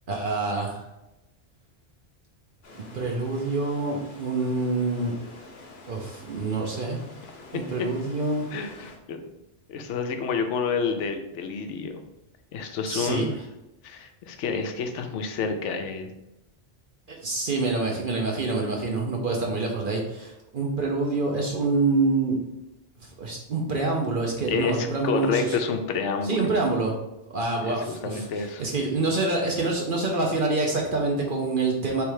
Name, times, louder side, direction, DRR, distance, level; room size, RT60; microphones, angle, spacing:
voice 1, 0.1-0.9 2.9-5.1 5.9-7.0 7.5-8.5 12.9-13.3 17.1-22.4 23.0-25.6 26.2-26.9 27.3-32.0, right 3 dB, 55° right, 0 dB, 0.8 m, -26 dB
sound 1, 2.6-9.0, left 2 dB, 50° left, 1.0 m, -47 dB
voice 2, 8.5-9.3 9.7-12.0 12.5-13.3 13.8-16.1 24.5-26.5 27.6-28.6, left 5 dB, 80° left, 6 dB, 0.9 m, -29 dB
3.4 x 3.2 x 4.7 m, 0.92 s
omnidirectional pair, 1.2 m